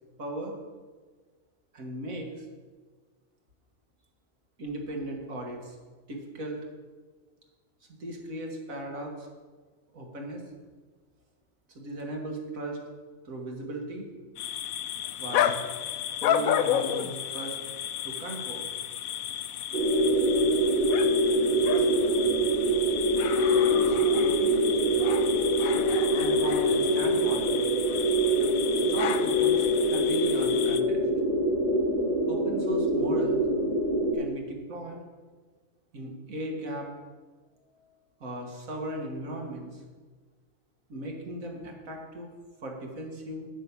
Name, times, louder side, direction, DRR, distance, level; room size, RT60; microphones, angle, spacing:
voice 1, 0.2-0.6 1.7-2.5 4.6-5.8 6.1-6.6 8.0-9.3 9.9-10.4 11.7-12.8 13.2-14.1 15.2-15.6 16.2-17.6 18.0-18.7 21.8-21.9 23.5-24.6 26.2-27.5 28.8-31.0 32.3-33.4 34.1-35.0 35.9-36.9 38.2-39.8 40.9-42.3 42.6-43.5, right 1 dB, 80° right, 1 dB, 2.1 m, -37 dB
sound 1, 14.4-30.8, left 10 dB, 90° left, 1.0 m, -32 dB
sound 2, 19.7-34.1, right 1 dB, 40° right, 1.5 m, -24 dB
8.9 x 5.9 x 8.2 m, 1.4 s
omnidirectional pair, 1.4 m